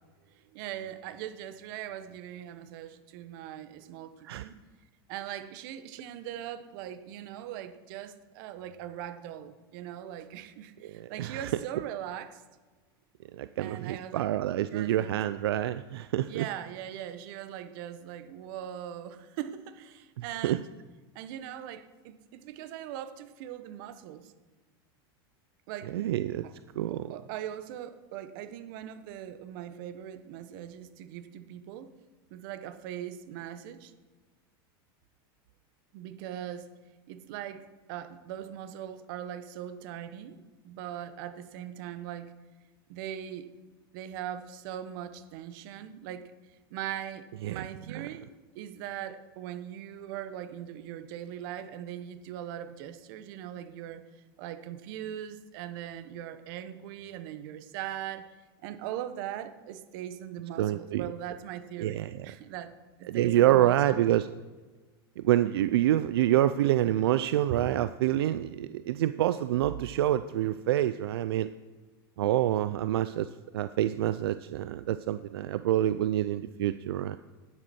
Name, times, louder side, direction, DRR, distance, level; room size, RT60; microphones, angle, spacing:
voice 1, 0.2-4.5 5.1-12.4 13.6-14.3 14.7-15.1 16.2-20.7 21.1-24.3 25.7-25.9 26.4-26.5 26.9-31.9 32.3-33.9 35.9-36.7 37.1-40.4 40.6-42.3 42.9-43.5 43.9-46.3 46.7-48.3 48.5-54.0 54.4-58.3 58.6-62.7 63.0-64.0 67.5-67.6, right 11 dB, 60° right, 11 dB, 1.1 m, -40 dB
voice 2, 11.0-11.5 13.4-16.4 20.4-20.6 25.9-26.4 26.8-27.1 47.4-47.6 60.6-61.1 61.8-62.1 63.1-64.3 65.2-71.5 72.2-73.3 73.5-77.2, right 13 dB, 90° right, 13 dB, 0.4 m, -27 dB
11.0 x 10.5 x 4.4 m, 1.3 s
supercardioid pair, 130°, 13 cm